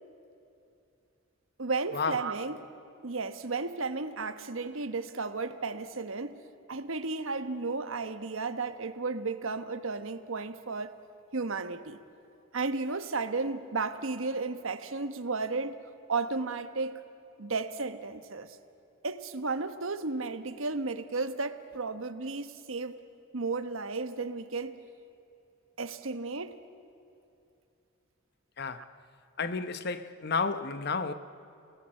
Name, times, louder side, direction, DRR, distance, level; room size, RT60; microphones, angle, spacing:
voice 1, 1.6-2.6 3.0-6.4 6.7-10.9 11.3-12.0 12.5-15.8 16.1-17.0 17.4-18.6 19.0-23.0 23.3-24.8 25.8-26.6, right 3 dB, 80° right, 10 dB, 1.1 m, -33 dB
voice 2, 28.6-28.9 29.4-31.1, left 4 dB, 50° left, 11 dB, 0.9 m, -31 dB
29.5 x 18.0 x 7.6 m, 2.8 s
head